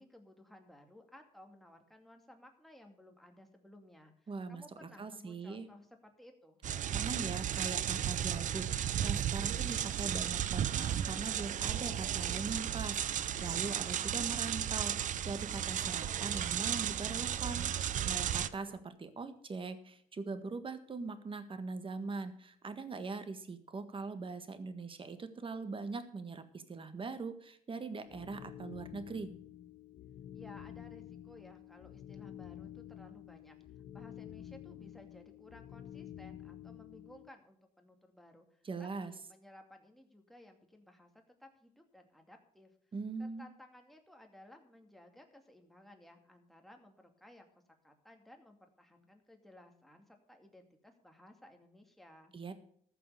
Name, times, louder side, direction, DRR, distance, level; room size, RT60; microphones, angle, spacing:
voice 1, 0.0-6.6 30.3-33.6 33.9-41.1 41.4-42.7 43.2-47.5 47.8-52.3, left 1 dB, ahead, 3 dB, 2.4 m, -58 dB
voice 2, 4.3-4.6 5.0-5.7 6.9-14.9 15.3-29.3 38.6-39.1 42.9-43.5 52.3-52.5, right 4 dB, 35° right, 10 dB, 1.6 m, -41 dB
sound 1, 6.6-18.5, right 10 dB, 60° right, 0.6 m, -34 dB
sound 2, 6.8-18.8, right 8 dB, 80° right, 1.0 m, -55 dB
sound 3, 28.1-37.3, left 11 dB, 65° left, 0.9 m, -50 dB
14.5 x 6.0 x 7.0 m, 0.63 s
cardioid pair, 85°, 15 cm